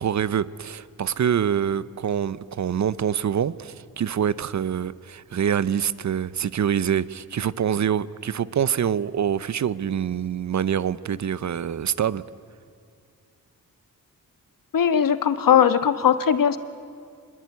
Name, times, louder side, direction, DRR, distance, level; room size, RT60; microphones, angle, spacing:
voice 1, 0.0-12.2, right 8 dB, 50° right, 17 dB, 0.8 m, -25 dB
voice 2, 14.7-16.6, left 8 dB, 65° left, 11 dB, 1.4 m, -19 dB
25.5 x 21.5 x 9.6 m, 2.3 s
cardioid pair, 90°, 36 cm